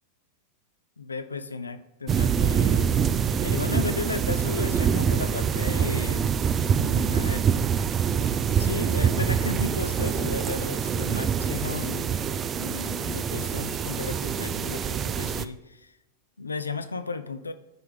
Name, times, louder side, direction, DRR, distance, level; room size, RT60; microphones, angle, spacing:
voice 1, 1.0-2.9 3.4-6.3 6.7-7.5 8.6-12.2 12.5-15.9 16.4-17.5, left 4 dB, 80° left, 10 dB, 0.6 m, -34 dB
sound 1, 2.1-15.5, right 7 dB, 25° right, 0.4 m, -25 dB
10.5 x 4.7 x 5.0 m, 0.97 s
figure-of-eight pair, 90°, 0 cm